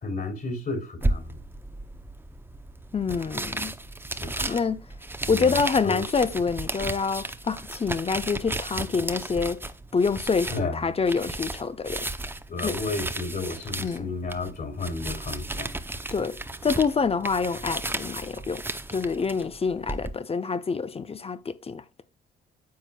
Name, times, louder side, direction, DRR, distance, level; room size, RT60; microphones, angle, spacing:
voice 1, 0.0-1.4 4.2-4.6 5.3-6.0 10.5-10.9 12.5-15.8, left 3 dB, 45° left, 3.2 m, -32 dB
sound 1, 1.0-20.1, right 2 dB, 10° right, 0.7 m, -34 dB
voice 2, 2.9-3.7 4.4-4.9 5.3-9.6 9.9-12.1 12.6-12.8 13.8-14.1 16.1-21.8, left 5 dB, 30° left, 0.7 m, -27 dB
9.5 x 7.5 x 2.3 m
cardioid pair, 90°, 20 cm